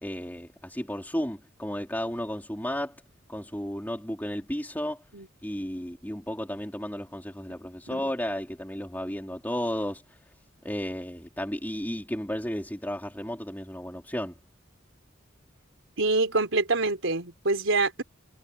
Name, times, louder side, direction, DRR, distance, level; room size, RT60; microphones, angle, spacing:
voice 1, 0.0-2.9 3.3-5.0 5.4-10.2 10.6-14.4, equal, 10° left, 3.3 m, -33 dB
voice 2, 16.0-18.0, right 3 dB, 80° right, 3.7 m, -25 dB
head